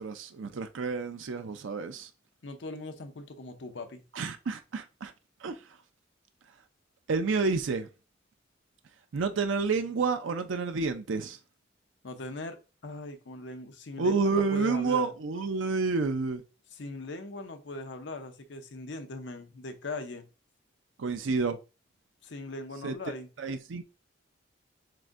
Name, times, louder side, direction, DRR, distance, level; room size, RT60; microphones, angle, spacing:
voice 1, 0.0-2.1 4.2-5.1 5.4-5.6 7.1-7.9 9.1-11.4 14.0-16.4 21.0-21.6 22.8-22.9 23.4-23.8, right 4 dB, 85° right, 0.5 m, -29 dB
voice 2, 2.4-4.0 12.0-15.1 16.7-20.2 22.2-23.3, left 2 dB, 70° left, 0.7 m, -40 dB
7.4 x 2.6 x 2.5 m
head